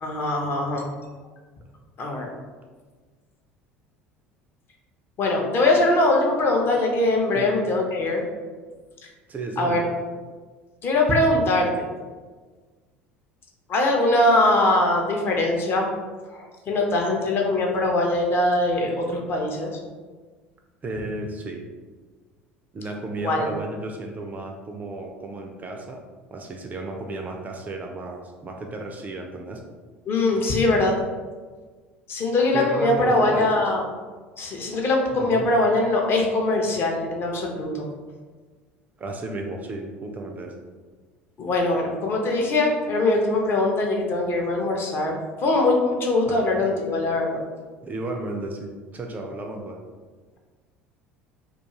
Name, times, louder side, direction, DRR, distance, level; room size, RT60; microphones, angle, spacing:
voice 1, 0.0-0.8 2.0-2.3 5.2-8.2 9.6-9.8 10.8-11.9 13.7-15.9 16.3-19.7 23.2-23.5 30.1-30.9 32.1-33.8 34.4-37.9 41.4-47.4, left 2 dB, 35° left, 1 dB, 0.5 m, -22 dB
voice 2, 9.3-9.8 20.8-21.7 22.7-26.0 26.3-29.6 32.5-33.6 35.2-35.5 39.0-40.6 46.2-46.6 47.8-49.8, right 2 dB, 25° right, 3 dB, 0.3 m, -33 dB
2.3 x 2.3 x 2.8 m, 1.4 s
figure-of-eight pair, 65°, 6 cm